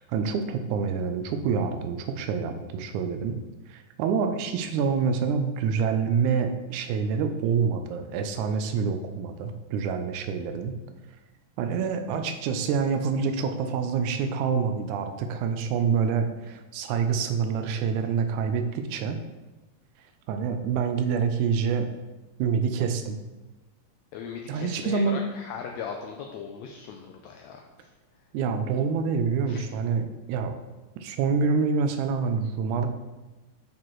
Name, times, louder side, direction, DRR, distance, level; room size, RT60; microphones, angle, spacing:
voice 1, 0.0-3.3 3.7-10.8 11.6-19.2 20.3-21.9 22.4-23.2 24.5-25.2 28.3-30.6 31.0-32.9, right 6 dB, 80° right, 6 dB, 1.9 m, -27 dB
voice 2, 24.1-27.9 29.5-29.6, left 6 dB, 90° left, 2 dB, 1.6 m, -39 dB
8.5 x 4.4 x 3.1 m, 1.1 s
omnidirectional pair, 3.7 m